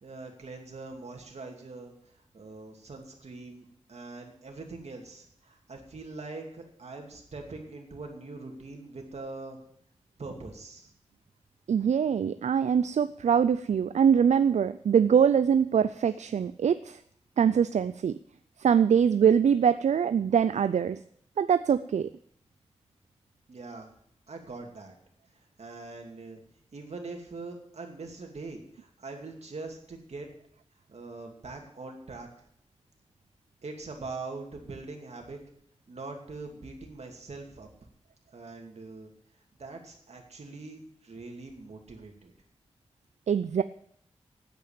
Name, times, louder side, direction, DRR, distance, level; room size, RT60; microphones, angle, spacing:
voice 1, 0.0-1.9 2.3-9.6 10.2-10.9 23.5-23.9 24.3-25.0 25.6-26.4 26.7-30.3 30.9-32.3 33.6-35.4 35.9-37.7 38.3-39.1 39.6-42.3, right 3 dB, 70° right, 2 dB, 2.5 m, -42 dB
voice 2, 11.7-17.0 17.4-18.2 18.6-21.0 21.4-22.1 43.3-43.6, right 7 dB, 90° right, 13 dB, 0.4 m, -23 dB
9.2 x 8.7 x 8.9 m, 0.67 s
wide cardioid pair, 90°, 12 cm